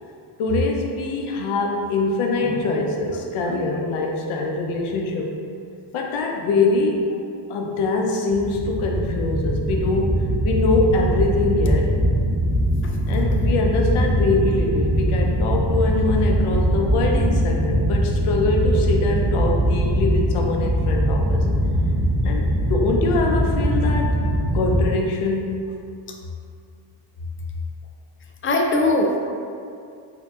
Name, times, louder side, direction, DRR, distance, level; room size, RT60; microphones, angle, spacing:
voice 1, 0.4-5.3 5.9-7.0 7.5-10.2 10.4-11.9 13.1-21.4 22.2-24.1 24.5-25.6, left 3 dB, 85° left, 1 dB, 0.7 m, -23 dB
sound 1, 8.3-24.8, equal, 30° right, 0.7 m, -21 dB
voice 2, 28.4-29.3, left 2 dB, 30° left, 1 dB, 0.4 m, -21 dB
4.6 x 2.8 x 2.4 m, 2.4 s
cardioid pair, 95°, 49 cm